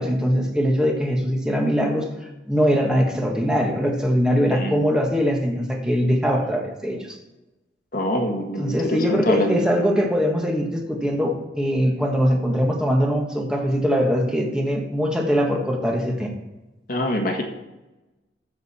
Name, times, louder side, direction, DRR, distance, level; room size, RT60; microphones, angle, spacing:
voice 1, 0.0-2.1 2.4-7.2 8.6-16.3, equal, 5° right, 1 dB, 1.5 m, -22 dB
voice 2, 7.9-9.6 16.9-17.4, equal, 50° left, 2 dB, 1.6 m, -24 dB
13.5 x 6.7 x 4.3 m, 1.0 s
head